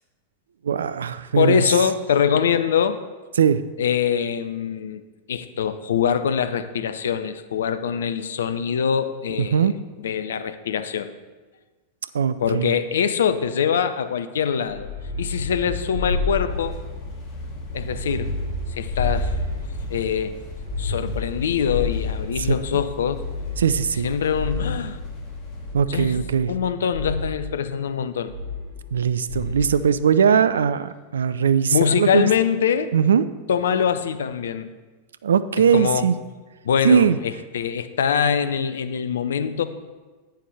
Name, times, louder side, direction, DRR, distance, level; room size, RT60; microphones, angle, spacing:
voice 1, 0.6-1.6 3.4-3.6 9.4-9.7 12.1-12.7 23.6-24.1 25.7-26.5 28.9-32.3 32.9-33.2 35.2-36.1 36.8-37.2, right 7 dB, 65° right, 14 dB, 0.4 m, -20 dB
voice 2, 1.4-3.0 3.8-5.0 5.3-9.7 10.0-11.1 12.4-14.9 15.2-16.8 17.7-18.3 18.8-19.3 19.9-20.3 20.8-23.2 24.0-25.0 25.9-26.2 26.5-28.3 31.7-32.9 33.5-34.7 35.7-36.0 36.6-39.6, left 7 dB, 65° left, 12 dB, 0.6 m, -23 dB
sound 1, 14.7-17.1 17.6-20.0 20.5-22.7 23.1-25.0 25.7-26.6 26.9-27.4 28.3-29.0 29.3-29.7, left 3 dB, 85° right, 1.7 m, -30 dB
sound 2, 16.5-25.7, left 1 dB, 35° left, 2.1 m, -36 dB
10.0 x 9.2 x 3.3 m, 1.3 s
figure-of-eight pair, 90°, 0 cm